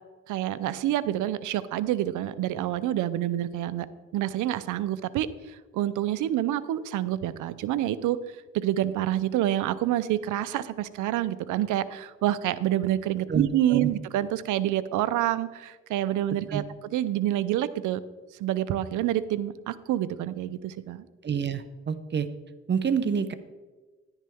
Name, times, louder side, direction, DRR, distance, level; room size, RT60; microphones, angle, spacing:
voice 1, 0.3-3.9 4.1-5.3 5.7-8.2 8.5-16.6 16.9-18.0 18.4-21.0, right 13 dB, 85° right, 15 dB, 0.6 m, -27 dB
voice 2, 13.3-13.9 16.5-16.6 21.2-22.3 22.7-23.3, right 7 dB, 35° right, 12 dB, 0.7 m, -27 dB
10.5 x 10.5 x 3.5 m, 1.3 s
cardioid pair, 90°, 30 cm